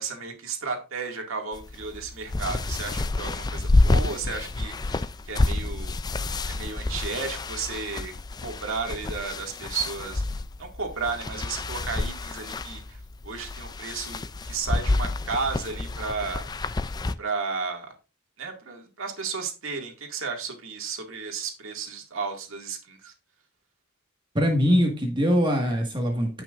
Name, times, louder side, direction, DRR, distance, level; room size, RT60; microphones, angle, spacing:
voice 1, 0.0-6.0 6.4-8.1 8.4-10.2 10.6-16.5 17.2-17.9 18.4-23.1, right 4 dB, 60° right, 2 dB, 2.1 m, -33 dB
sound 1, 1.5-17.1, left 2 dB, 20° left, 0.3 m, -28 dB
voice 2, 24.3-26.4, equal, 20° right, 1 dB, 1.6 m, -22 dB
16.0 x 5.9 x 2.5 m, 0.31 s
head